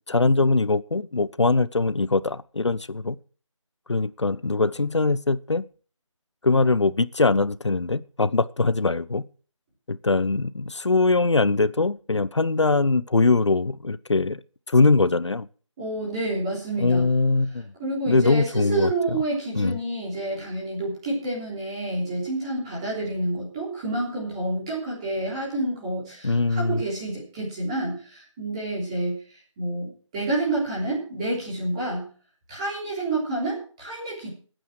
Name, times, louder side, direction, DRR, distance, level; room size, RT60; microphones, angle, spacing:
voice 1, 0.1-3.2 3.9-5.7 6.4-9.2 9.9-14.4 14.7-15.5 16.8-17.7 18.1-19.2 19.5-19.8 26.2-26.8, left 3 dB, 60° left, 0.8 m, -22 dB
voice 2, 15.8-17.1 17.8-29.2 29.6-32.1 32.5-34.3, right 2 dB, 10° right, 3.5 m, -28 dB
14.0 x 9.2 x 6.4 m
figure-of-eight pair, 175°, 17 cm